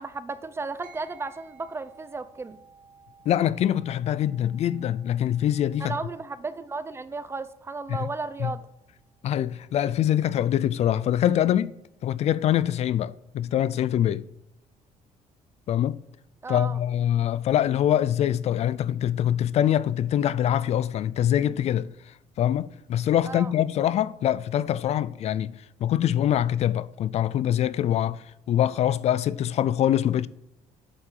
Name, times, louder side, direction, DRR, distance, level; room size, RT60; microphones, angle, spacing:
voice 1, 0.0-2.6 5.8-8.6 16.4-16.8 23.2-23.5, right 3 dB, 20° right, 0.6 m, -34 dB
sound 1, 0.8-10.5, right 6 dB, 80° right, 3.2 m, -57 dB
voice 2, 3.3-6.0 8.4-8.5 9.2-11.7 12.0-14.3 15.7-16.0 16.5-21.9 22.4-25.5 25.8-30.3, left 11 dB, 55° left, 0.4 m, -24 dB
8.3 x 7.5 x 7.6 m
cardioid pair, 145°, 13 cm